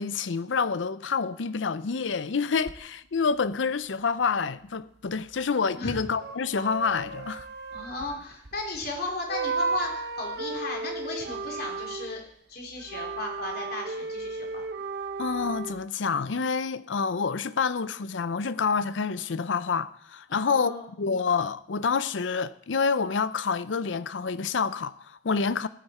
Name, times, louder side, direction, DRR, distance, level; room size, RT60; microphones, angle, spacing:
voice 1, 0.0-7.5 15.2-20.7 21.0-25.7, left 5 dB, 75° left, 0.6 m, -28 dB
sound 1, 2.6-2.7 6.2-9.0 9.3-12.2 12.8-15.8, right 4 dB, 60° right, 0.9 m, -34 dB
voice 2, 7.7-12.2 12.5-14.7 20.3-20.9, left 2 dB, 55° left, 3.2 m, -35 dB
15.0 x 9.0 x 4.2 m
head